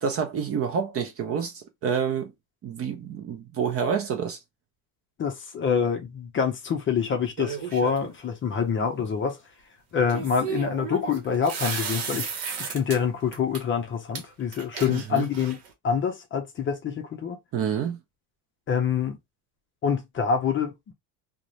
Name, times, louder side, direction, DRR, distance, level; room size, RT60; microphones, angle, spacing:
voice 1, 0.0-2.3 2.6-4.4 14.9-15.3 17.5-18.0, right 7 dB, 35° right, 0.4 m, -28 dB
voice 2, 5.2-9.4 9.9-15.6 15.8-17.4 18.7-19.2 19.8-20.9, left 6 dB, 30° left, 0.5 m, -26 dB
sound 1, 7.4-8.1 10.1-13.0 13.3-13.6 14.1-14.2 14.5-15.7, right 6 dB, 60° right, 1.0 m, -34 dB
2.4 x 2.1 x 2.9 m
cardioid pair, 135°, 44 cm